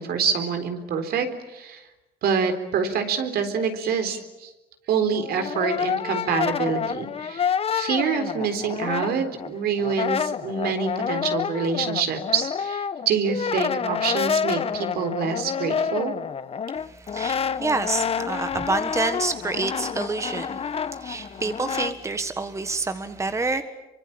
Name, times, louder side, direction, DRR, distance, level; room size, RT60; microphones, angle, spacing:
voice 1, 0.0-1.8 2.2-4.5 4.9-16.1, right 6 dB, 65° right, 7 dB, 3.9 m, -26 dB
Brass instrument, 5.1-9.5 9.8-21.9, left 7 dB, 35° left, 1.0 m, -28 dB
voice 2, 16.8-23.6, right 3 dB, 15° right, 9 dB, 1.5 m, -28 dB
27.0 x 24.5 x 8.8 m, 1.0 s
cardioid pair, 110°, 17 cm